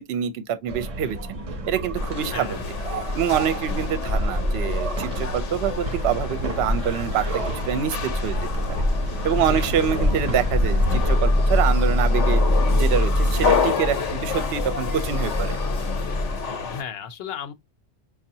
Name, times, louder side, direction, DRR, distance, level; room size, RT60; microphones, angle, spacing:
voice 1, 0.0-1.4 1.7-2.6 3.1-7.2 7.5-8.4 8.7-8.8 9.2-12.4 12.7-15.6, right 9 dB, 70° right, 0.8 m, -26 dB
sound 1, 0.7-13.5, equal, 35° right, 0.6 m, -28 dB
sound 2, 1.9-16.8, left 5 dB, 85° left, 1.1 m, -30 dB
voice 2, 2.3-2.7 9.3-9.7 16.6-17.5, left 7 dB, 60° left, 0.8 m, -34 dB
sound 3, 9.3-16.5, left 1 dB, 30° left, 0.7 m, -24 dB
5.2 x 2.4 x 2.7 m
omnidirectional pair, 1.2 m